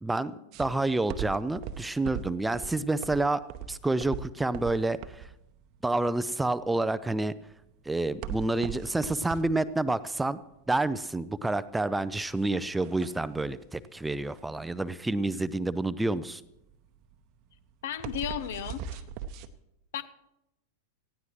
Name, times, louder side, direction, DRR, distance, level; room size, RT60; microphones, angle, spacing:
voice 1, 0.0-0.3 0.6-5.3 5.8-7.3 7.9-10.4 10.7-16.4, right 2 dB, 5° right, 15 dB, 0.4 m, -29 dB
sound 1, 0.5-19.5, right 8 dB, 40° right, 0.8 m, -41 dB
voice 2, 17.8-19.0 19.9-20.0, left 10 dB, 55° left, 15 dB, 0.7 m, -34 dB
18.5 x 14.5 x 3.1 m, 0.89 s
figure-of-eight pair, 90°, 0 cm